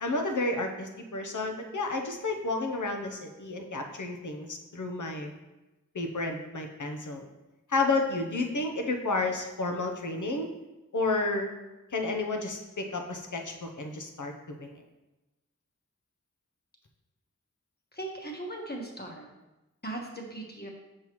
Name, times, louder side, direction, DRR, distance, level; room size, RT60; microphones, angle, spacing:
voice 1, 0.0-5.3 5.9-7.3 7.7-10.5 10.9-11.5 11.9-14.8, left 3 dB, 75° left, 4 dB, 0.8 m, -31 dB
voice 2, 17.9-19.3 19.8-20.7, right 2 dB, 30° left, 0 dB, 1.2 m, -38 dB
6.5 x 5.5 x 3.1 m, 1.0 s
wide cardioid pair, 45°, 31 cm